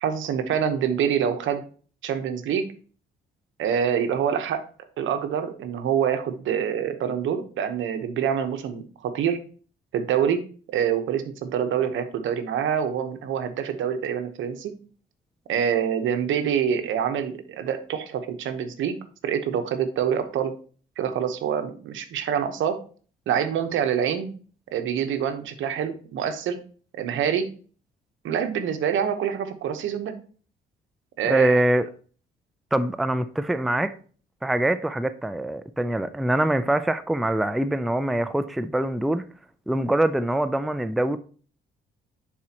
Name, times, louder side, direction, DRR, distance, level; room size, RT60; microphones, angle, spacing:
voice 1, 0.0-1.6 2.0-2.6 3.6-4.6 5.0-9.4 9.9-10.4 10.7-14.7 15.5-19.0 19.2-20.5 21.0-22.8 23.3-24.3 24.7-26.6 26.9-27.5 28.2-30.1 31.2-31.6, right 8 dB, 80° right, 1.0 m, -26 dB
voice 2, 31.2-31.9 32.7-33.9 34.4-39.2 39.7-41.2, right 1 dB, ahead, 0.4 m, -24 dB
10.0 x 4.3 x 2.9 m
cardioid pair, 90°, 20 cm